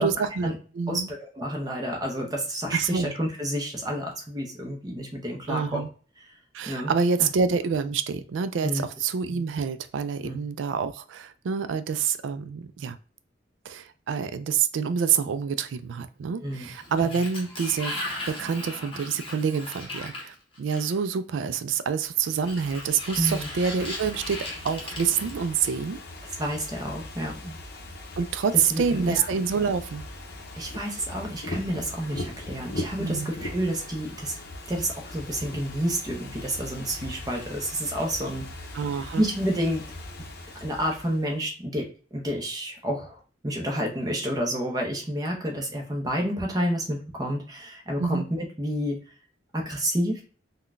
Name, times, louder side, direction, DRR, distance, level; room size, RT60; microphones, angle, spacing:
voice 1, 0.0-1.1 2.7-3.1 5.5-5.9 6.5-13.0 13.7-26.0 28.2-30.0 33.0-33.3 38.7-39.2 48.0-48.2, right 6 dB, 85° right, 11 dB, 0.3 m, -27 dB
voice 2, 0.9-5.8 6.7-6.9 7.2-7.3 8.6-8.8 10.2-10.4 16.4-16.7 23.2-23.5 26.4-27.6 28.7-29.2 30.5-34.3 34.7-38.5 39.2-39.8 40.6-43.2 43.4-49.0 49.5-50.2, equal, 20° right, 1 dB, 0.7 m, -29 dB
Sliding door, 16.5-21.1 22.3-26.0, left 1 dB, 30° left, 0.9 m, -38 dB
Ocean / Fireworks, 22.1-41.4, left 1 dB, 55° left, 0.6 m, -40 dB
3.7 x 2.2 x 2.4 m, 0.39 s
head